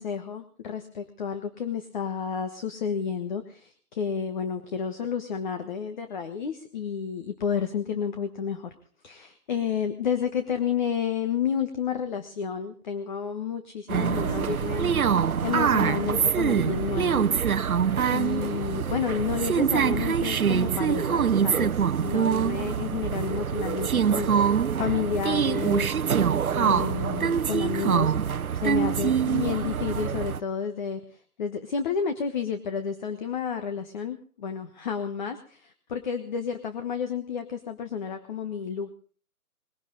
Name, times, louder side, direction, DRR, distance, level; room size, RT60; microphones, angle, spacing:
voice 1, 0.0-8.7 9.0-14.9 15.4-17.3 18.1-26.0 26.5-28.1 28.5-38.9, left 7 dB, 30° left, 8 dB, 1.4 m, -31 dB
sound 1, 13.9-30.4, right 7 dB, 70° right, 0.9 m, -24 dB
21.0 x 17.0 x 4.0 m, 0.43 s
figure-of-eight pair, 150°, 44 cm